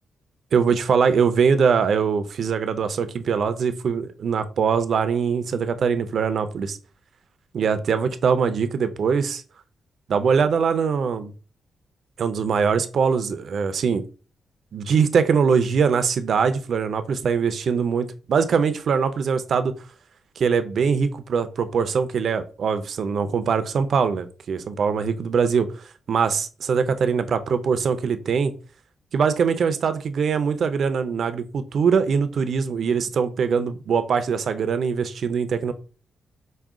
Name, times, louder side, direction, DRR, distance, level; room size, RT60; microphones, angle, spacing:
voice 1, 0.5-6.8 7.5-9.4 10.1-11.3 12.2-14.0 14.7-19.7 20.4-25.7 26.1-28.5 29.1-35.7, right 6 dB, 55° right, 11 dB, 0.4 m, -22 dB
4.8 x 2.2 x 3.6 m, 0.36 s
cardioid pair, 130°, 0 cm